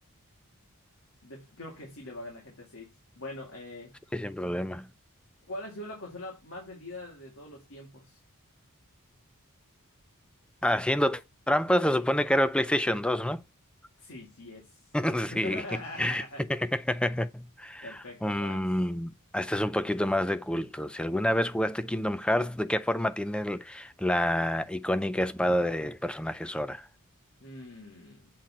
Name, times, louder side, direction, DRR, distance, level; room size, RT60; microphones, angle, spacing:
voice 1, 1.2-2.9 3.2-3.9 5.5-8.2 14.0-14.9 15.3-16.4 17.8-18.6 27.4-28.3, left 1 dB, 65° left, 2.3 m, -42 dB
voice 2, 4.1-4.9 10.6-11.2 11.5-13.4 14.9-16.2 16.5-26.9, left 1 dB, 5° left, 0.3 m, -28 dB
7.5 x 4.1 x 4.2 m
head